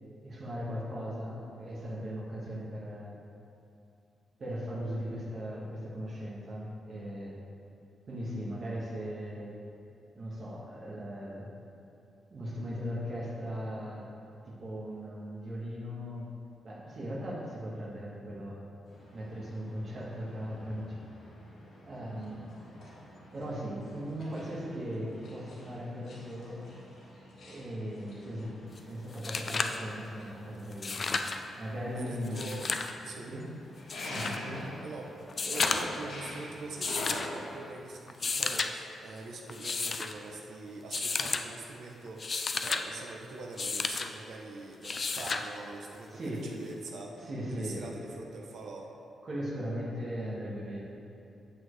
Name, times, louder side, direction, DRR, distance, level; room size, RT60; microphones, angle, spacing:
voice 1, 0.2-3.1 4.4-7.4 8.1-9.5 10.1-11.5 12.3-14.1 14.4-16.3 16.6-18.6 19.1-21.0 21.8-22.6 23.3-26.6 27.4-31.0 31.6-32.5 33.2-33.4 34.1-34.7 46.1-46.5 47.2-48.2 49.2-50.8, equal, 35° right, -5 dB, 1.5 m, -38 dB
sound 1, 18.9-37.7, left 1 dB, 65° left, 1.7 m, -46 dB
sound 2, 28.8-28.9 29.1-29.8 30.7-31.4 32.2-32.9 33.9-34.4 35.3-36.0 36.8-37.3 38.1-38.7 39.5-40.1 40.9-41.4 42.1-42.8 43.6-44.1 44.8-45.5 46.9-47.0, left 4 dB, 30° left, 0.3 m, -32 dB
voice 2, 31.9-32.7 33.0-33.3 34.8-35.1 35.4-48.9, right 3 dB, 60° right, 0 dB, 0.8 m, -43 dB
8.5 x 7.4 x 3.2 m, 2.7 s
wide cardioid pair, 180°, 0 cm